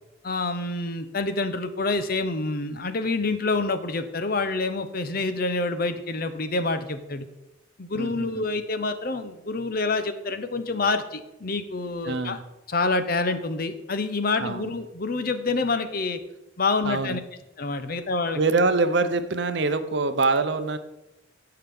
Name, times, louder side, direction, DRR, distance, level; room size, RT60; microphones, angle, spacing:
voice 1, 0.2-7.3 7.8-12.4 12.7-16.2 16.6-17.2 17.6-18.4, left 3 dB, 45° left, 10 dB, 0.7 m, -27 dB
voice 2, 8.0-8.4 12.0-12.4 14.4-14.7 16.8-17.2 18.3-20.8, right 3 dB, 55° right, 10 dB, 0.6 m, -24 dB
16.0 x 5.8 x 3.6 m, 0.94 s
head